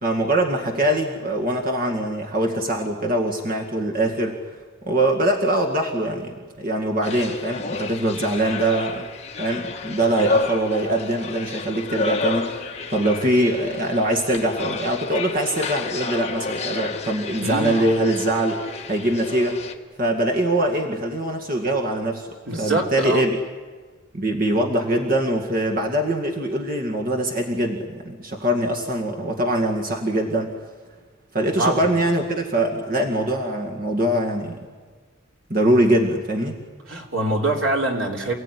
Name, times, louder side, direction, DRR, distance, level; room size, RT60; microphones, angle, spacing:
voice 1, 0.0-4.3 4.8-9.0 9.4-12.6 12.9-18.6 18.9-19.6 20.0-23.4 24.1-30.5 31.3-34.6 35.5-36.6, right 1 dB, 45° right, 1 dB, 2.2 m, -23 dB
sound 1, 7.0-19.7, left 3 dB, 30° left, 1.7 m, -30 dB
voice 2, 17.4-17.8 22.5-23.3 31.6-31.9 36.9-38.3, right 2 dB, 80° right, 1 dB, 3.6 m, -24 dB
28.5 x 17.0 x 10.0 m, 1.4 s
head